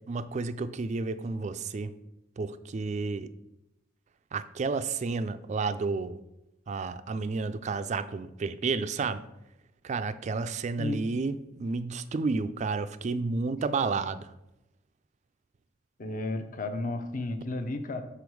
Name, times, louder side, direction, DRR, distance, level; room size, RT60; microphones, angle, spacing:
voice 1, 0.1-1.9 2.4-3.3 4.3-6.2 6.7-9.2 9.8-14.3, right 4 dB, 35° right, 12 dB, 0.3 m, -31 dB
voice 2, 16.0-18.0, left 2 dB, 40° left, 7 dB, 0.6 m, -33 dB
6.9 x 4.1 x 4.6 m, 0.90 s
head